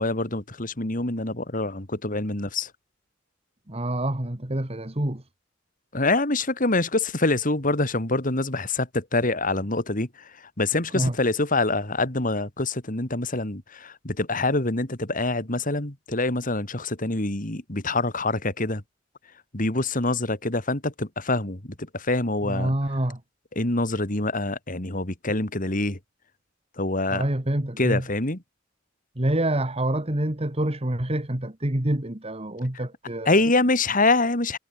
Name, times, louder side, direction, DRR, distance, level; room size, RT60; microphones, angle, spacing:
voice 1, 0.0-2.7 5.9-18.8 19.5-22.7 23.5-26.0 26.8-27.3 27.8-28.4 33.2-34.6, left 2 dB, 45° left, 3.5 m, -25 dB
voice 2, 3.7-5.2 10.9-11.1 22.4-23.2 27.1-28.0 29.2-33.4, right 1 dB, 30° right, 2.0 m, -26 dB
head